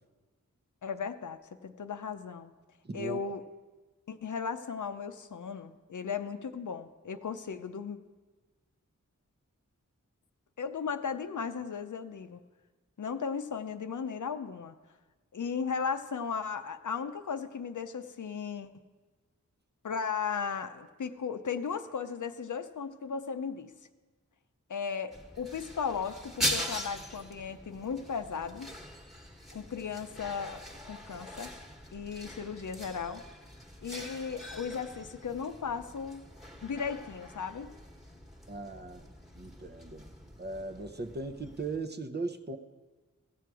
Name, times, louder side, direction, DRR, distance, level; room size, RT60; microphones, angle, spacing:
voice 1, 0.8-2.5 2.9-3.4 4.1-8.0 10.6-12.4 13.0-14.7 15.3-18.7 19.8-23.7 24.7-28.7 29.5-31.5 31.9-33.2 33.8-36.3 36.6-37.7, left 6 dB, 70° left, 9 dB, 0.6 m, -36 dB
voice 2, 2.8-3.3 38.5-39.0 39.3-42.6, right 3 dB, 30° right, 8 dB, 0.7 m, -38 dB
sound 1, 25.1-41.8, equal, ahead, 1.4 m, -42 dB
15.0 x 7.6 x 4.7 m, 1.3 s
wide cardioid pair, 50°, 32 cm